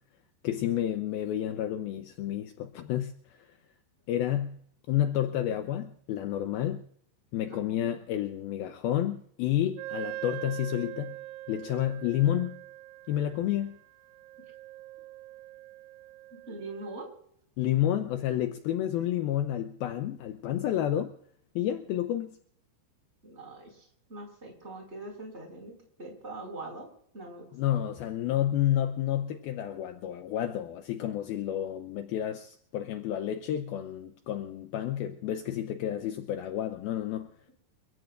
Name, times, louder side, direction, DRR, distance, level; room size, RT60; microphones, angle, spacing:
voice 1, 0.4-3.1 4.1-4.6 4.9-6.8 7.3-11.1 11.5-12.6 13.1-13.8 17.6-21.1 21.6-22.4 27.5-37.3, left 11 dB, 80° left, 2.2 m, -30 dB
voice 2, 7.5-7.9 16.3-17.1 23.2-26.9 27.1-27.5, right 2 dB, 15° right, 5.7 m, -43 dB
Wind instrument woodwind instrument, 9.8-17.1, right 17 dB, 85° right, 3.2 m, -43 dB
30.0 x 15.0 x 2.5 m
omnidirectional pair, 5.3 m